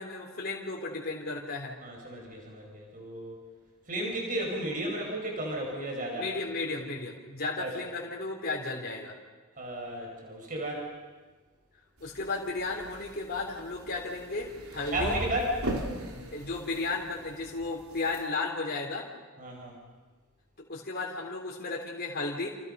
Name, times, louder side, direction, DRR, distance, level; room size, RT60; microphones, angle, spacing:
voice 1, 0.0-1.7 6.1-9.1 12.0-15.2 16.1-19.1 20.6-22.5, left 3 dB, 45° left, -2 dB, 3.5 m, -34 dB
voice 2, 1.8-3.4 3.9-6.3 7.6-7.7 9.6-10.8 14.9-15.5 19.4-19.7, right 1 dB, 40° right, 0 dB, 5.6 m, -33 dB
sound 1, 12.0-18.2, right 1 dB, 75° right, 3.6 m, -39 dB
29.5 x 28.0 x 5.5 m, 1.3 s
head